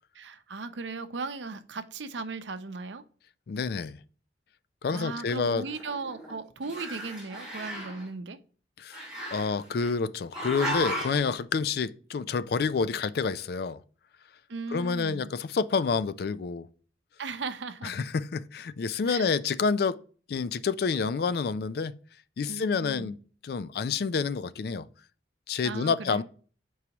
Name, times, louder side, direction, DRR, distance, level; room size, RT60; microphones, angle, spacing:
voice 1, 0.1-3.0 4.9-8.4 14.5-15.3 17.2-17.9 19.1-19.3 22.5-23.2 25.6-26.2, right 4 dB, 75° right, 0.6 m, -37 dB
voice 2, 3.5-4.0 4.8-5.6 8.8-9.0 9.3-13.8 14.7-16.7 17.8-20.0 20.3-22.0 22.4-23.2 23.4-24.9 25.5-26.2, left 5 dB, 55° left, 0.3 m, -28 dB
Growling, 5.2-6.3 6.6-8.1 8.9-9.9 10.3-11.3, equal, 5° right, 3.3 m, -35 dB
8.2 x 4.7 x 2.9 m
head